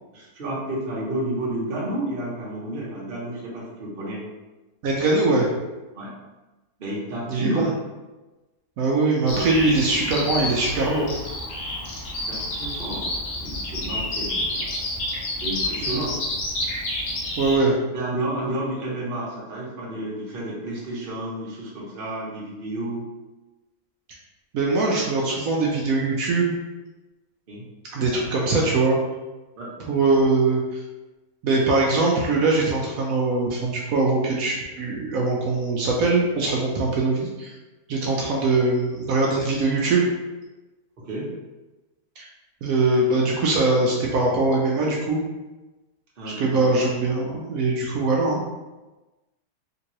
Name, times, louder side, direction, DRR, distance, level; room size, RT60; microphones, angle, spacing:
voice 1, 0.1-4.2 5.9-6.1 6.8-7.7 11.8-11.9 12.3-13.1 13.4-14.7 15.4-16.1 17.9-23.0 27.5-27.6 29.5-29.7 41.0-41.3 46.2-46.7, right 1 dB, 40° right, -6 dB, 1.1 m, -31 dB
voice 2, 4.8-5.5 7.3-7.7 8.8-11.1 15.8-16.0 17.4-17.7 24.5-26.5 27.9-29.0 29.9-30.8 31.4-37.6 37.9-40.1 42.2-42.3 42.6-45.2 46.4-48.4, right 3 dB, 70° right, -2 dB, 1.0 m, -22 dB
Bird vocalization bird call bird song, 9.3-17.6, left 1 dB, 80° left, 1.2 m, -29 dB
3.6 x 2.9 x 3.0 m, 1.1 s
omnidirectional pair, 1.6 m